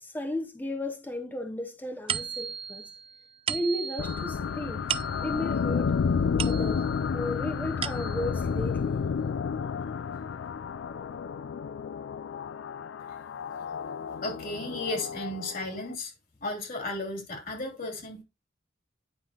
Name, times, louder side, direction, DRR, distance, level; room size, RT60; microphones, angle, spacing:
voice 1, 0.0-2.8 3.5-4.8 5.2-5.9 6.4-6.8 7.1-9.0, left 1 dB, 10° left, 0.7 m, -34 dB
sound 1, 2.1-7.1 7.5-8.4, right 8 dB, 30° right, 0.3 m, -36 dB
sound 2, 4.0-15.9, left 6 dB, 75° left, 0.4 m, -31 dB
voice 2, 14.2-16.1 16.4-18.2, left 2 dB, 50° left, 2.7 m, -34 dB
9.5 x 5.5 x 2.8 m
head